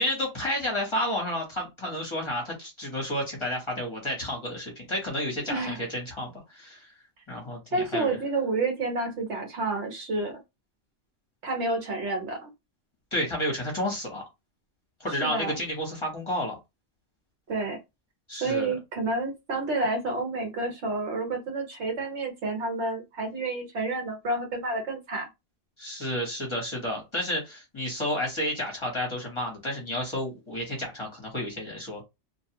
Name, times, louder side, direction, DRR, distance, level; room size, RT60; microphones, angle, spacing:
voice 1, 0.0-6.9 7.3-8.2 13.1-14.2 15.0-16.6 18.3-18.7 25.8-32.0, equal, 25° left, -2 dB, 1.0 m, -31 dB
voice 2, 5.5-5.8 7.7-10.4 11.4-12.5 15.2-15.5 17.5-17.8 18.4-25.3, right 2 dB, 70° right, 3 dB, 1.2 m, -29 dB
2.5 x 2.3 x 2.8 m, 0.22 s
omnidirectional pair, 1.2 m